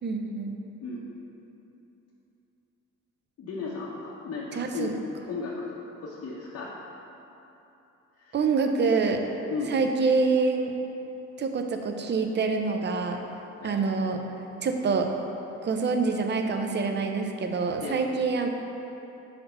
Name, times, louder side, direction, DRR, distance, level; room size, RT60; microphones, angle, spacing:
voice 1, 0.0-0.6 4.5-4.9 8.3-9.2 9.7-10.7 11.4-13.2 13.6-14.2 14.6-15.1 15.6-18.5, right 4 dB, 35° right, 5 dB, 0.5 m, -26 dB
voice 2, 3.4-4.9 5.3-6.7 8.2-8.4 9.5-9.8 13.6-13.8 17.8-18.0, left 4 dB, 60° left, -5 dB, 0.8 m, -35 dB
4.2 x 4.2 x 5.5 m, 2.9 s
cardioid pair, 90°, 30 cm